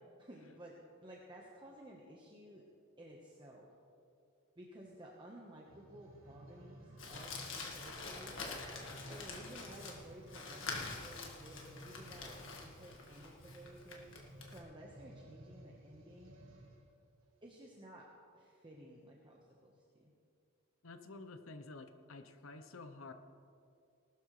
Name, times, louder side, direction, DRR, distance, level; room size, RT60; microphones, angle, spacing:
voice 1, 0.2-2.7 3.0-3.7 4.6-8.5 9.1-14.1 14.4-16.3 17.4-20.1, right 1 dB, 25° right, -2 dB, 1.2 m, -55 dB
sound 1, 5.6-16.9 17.5-17.6, right 1 dB, 85° right, 2.0 m, -56 dB
Crumpling crinkling, 7.0-14.6, left 4 dB, 65° left, 1.8 m, -46 dB
voice 2, 20.8-23.1, left 3 dB, 85° left, 8 dB, 0.9 m, -50 dB
19.5 x 12.5 x 3.3 m, 2.5 s
head